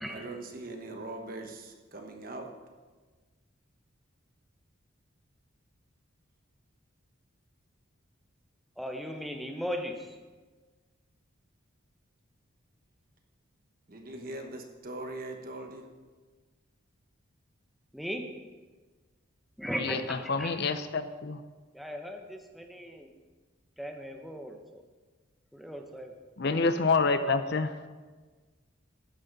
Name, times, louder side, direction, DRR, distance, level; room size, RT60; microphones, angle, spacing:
voice 1, 0.1-2.5 13.9-15.9, right 2 dB, 45° right, 4 dB, 1.2 m, -41 dB
voice 2, 8.8-10.0 17.9-18.2 19.6-20.5 21.7-23.1 23.8-24.5 25.5-26.1, equal, ahead, 3 dB, 0.9 m, -37 dB
voice 3, 19.8-21.4 26.4-27.9, left 4 dB, 50° left, 10 dB, 0.6 m, -28 dB
12.5 x 9.7 x 4.0 m, 1.4 s
head